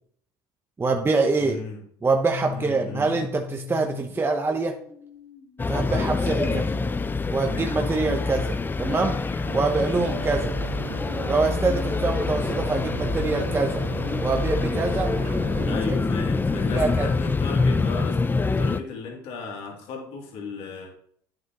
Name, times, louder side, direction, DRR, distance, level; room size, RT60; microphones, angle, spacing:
voice 1, 0.8-1.6 2.0-4.7 5.7-6.6 7.3-8.5 8.8-9.2 9.5-10.5 11.3-13.8 14.2-15.2 15.6-15.9 16.5-17.1, right 3 dB, 20° right, 3 dB, 1.0 m, -25 dB
voice 2, 1.4-1.8 2.5-3.2 6.3-6.8 7.4-8.2 15.6-20.9, left 4 dB, 65° left, 0 dB, 3.0 m, -36 dB
sound 1, 2.2-10.8, left 5 dB, 45° left, 2.6 m, -41 dB
sound 2, 5.6-18.8, left 3 dB, 20° left, 0.5 m, -26 dB
sound 3, 9.4-15.7, right 7 dB, 70° right, 1.8 m, -36 dB
9.8 x 7.8 x 3.0 m, 0.65 s
hypercardioid pair, 80°, 11 cm